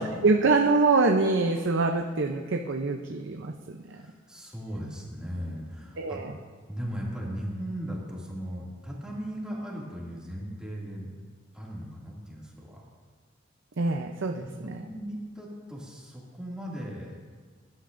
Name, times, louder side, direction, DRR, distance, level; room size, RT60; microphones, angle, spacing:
voice 1, 0.0-4.0 6.0-6.3 13.8-14.8, right 3 dB, 65° right, 3 dB, 0.7 m, -25 dB
voice 2, 3.8-6.2 6.7-11.1 11.5-12.8 13.9-14.0 14.4-17.2, equal, 5° right, -5 dB, 2.4 m, -37 dB
21.0 x 12.0 x 2.6 m, 1.5 s
head